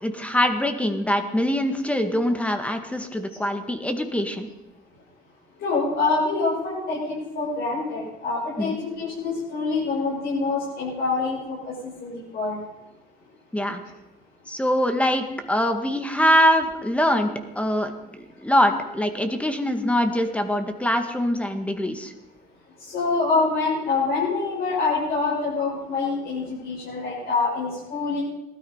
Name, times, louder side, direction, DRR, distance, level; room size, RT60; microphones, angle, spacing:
voice 1, 0.0-4.5 8.6-8.8 13.5-13.8 14.5-17.9 18.2-22.1, equal, 5° left, 7 dB, 1.9 m, -23 dB
voice 2, 5.6-12.6 22.8-28.2, left 4 dB, 65° left, -7 dB, 7.5 m, -26 dB
18.5 x 13.0 x 5.7 m, 1.0 s
cardioid pair, 110°, 17 cm